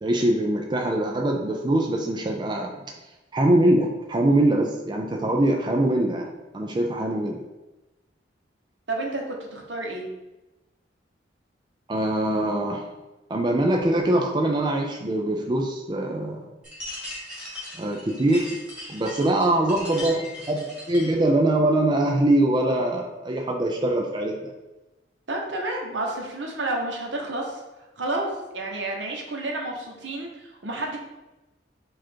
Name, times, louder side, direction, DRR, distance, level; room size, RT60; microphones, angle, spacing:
voice 1, 0.0-2.7 3.3-7.4 11.9-12.9 13.3-16.5 17.8-18.6 18.9-24.3, right 1 dB, 25° right, 1 dB, 0.4 m, -23 dB
voice 2, 8.9-10.1 25.3-27.6 28.0-28.3 28.5-31.0, right 2 dB, 75° right, 1 dB, 0.9 m, -30 dB
sound 1, 16.6-21.2, left 1 dB, 5° right, 1.5 m, -38 dB
4.8 x 2.5 x 4.4 m, 1.1 s
head